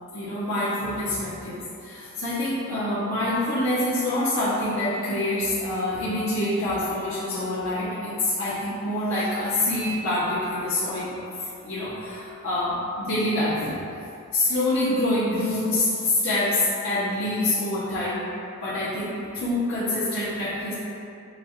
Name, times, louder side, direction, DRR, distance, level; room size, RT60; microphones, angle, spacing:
voice 1, 0.1-13.8 14.3-18.2 18.6-20.7, left 1 dB, 65° left, -11 dB, 0.8 m, -26 dB
6.7 x 2.3 x 3.0 m, 2.6 s
head